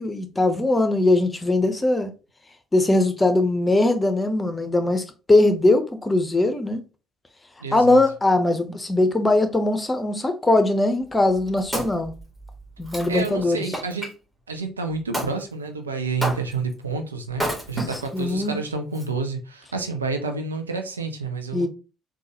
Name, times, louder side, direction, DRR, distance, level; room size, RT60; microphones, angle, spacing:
voice 1, 0.0-2.1 2.7-6.8 7.7-12.1 12.8-13.6 17.8-17.9 18.1-18.6 21.5-21.7, left 2 dB, 20° left, 0.8 m, -20 dB
voice 2, 7.6-8.0 13.1-14.1 14.5-21.7, right 4 dB, 85° right, 0.4 m, -29 dB
Wood, 11.1-14.1 15.1-15.4 16.2-16.7 17.3-18.3 19.0-19.1, right 1 dB, 10° right, 1.7 m, -31 dB
3.8 x 2.3 x 2.9 m
figure-of-eight pair, 50°, 0 cm